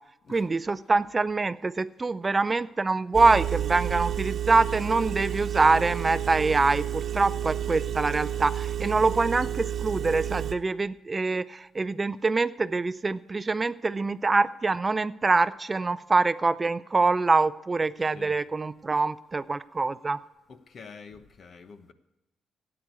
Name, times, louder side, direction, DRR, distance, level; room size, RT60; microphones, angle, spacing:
voice 1, 0.3-20.2, right 3 dB, 25° right, 0.4 m, -25 dB
Engine, 3.1-10.5, right 10 dB, 55° right, 1.1 m, -30 dB
voice 2, 18.0-18.4 18.9-19.0 20.5-21.9, left 5 dB, 50° left, 1.1 m, -47 dB
12.5 x 8.7 x 8.1 m
cardioid pair, 90°, 0 cm